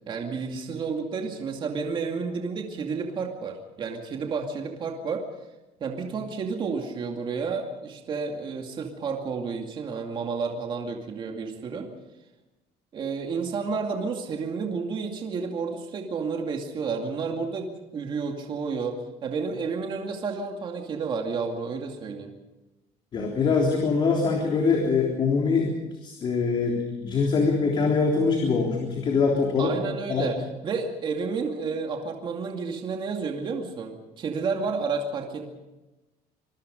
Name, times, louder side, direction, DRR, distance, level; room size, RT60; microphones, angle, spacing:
voice 1, 0.0-5.2 5.8-11.9 12.9-17.7 17.9-22.3 29.6-35.5, right 5 dB, 35° right, 2 dB, 2.4 m, -31 dB
voice 2, 23.1-25.7 26.0-29.7 30.1-30.3, left 4 dB, 35° left, 0 dB, 3.5 m, -23 dB
26.0 x 22.5 x 5.3 m, 1.1 s
cardioid pair, 175°, 15 cm